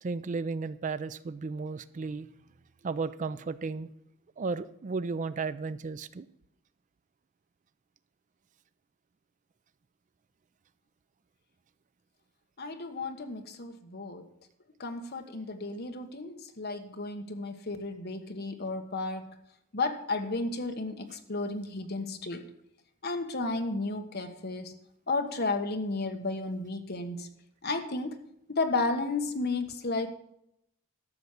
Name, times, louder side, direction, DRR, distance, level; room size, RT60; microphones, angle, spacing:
voice 1, 0.0-2.3 2.8-3.9 4.4-6.3, right 4 dB, 35° right, 15 dB, 0.4 m, -34 dB
voice 2, 12.6-14.2 14.8-19.3 19.7-22.4 23.0-24.8 25.1-27.3 27.6-28.1 28.5-30.1, left 3 dB, 50° left, 6 dB, 1.2 m, -33 dB
12.0 x 7.1 x 6.5 m, 0.76 s
head